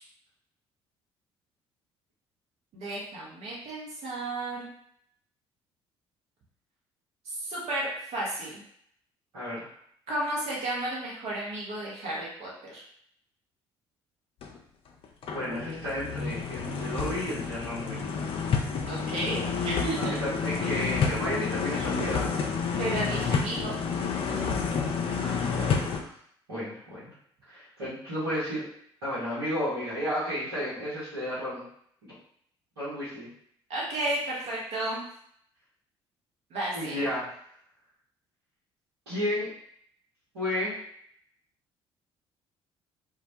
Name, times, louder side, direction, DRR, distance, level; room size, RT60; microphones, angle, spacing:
voice 1, 2.7-4.7 7.3-8.6 10.1-12.8 18.9-19.4 19.6-20.2 22.8-23.8 33.7-35.1 36.5-36.9, right 2 dB, 55° right, -5 dB, 0.8 m, -33 dB
voice 2, 9.3-9.6 15.3-18.0 20.0-22.3 25.1-26.1 26.5-27.1 27.5-28.7 29.0-31.6 32.0-32.1 32.8-33.3 36.7-37.4 39.1-39.5 40.3-40.7, equal, 80° right, -13 dB, 1.0 m, -32 dB
sound 1, 14.4-14.6 15.0-26.0, left 5 dB, 40° left, 0.4 m, -29 dB
2.2 x 2.1 x 2.7 m, 0.66 s
figure-of-eight pair, 50°, 14 cm